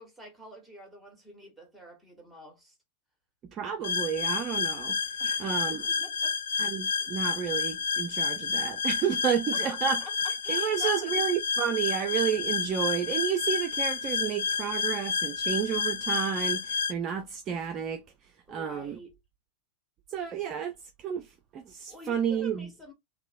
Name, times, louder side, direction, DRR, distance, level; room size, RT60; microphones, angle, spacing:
voice 1, 0.0-2.8 5.2-6.4 9.7-10.0 10.4-11.1 18.5-19.1 21.9-22.9, right 1 dB, ahead, 1.2 m, -47 dB
voice 2, 3.5-5.0 5.4-5.8 6.6-10.0 10.5-18.0 18.5-19.0 20.1-22.7, right 8 dB, 30° right, 0.4 m, -31 dB
sound 1, 3.8-16.9, left 5 dB, 60° left, 0.3 m, -30 dB
2.9 x 2.1 x 2.4 m
figure-of-eight pair, 90°, 0 cm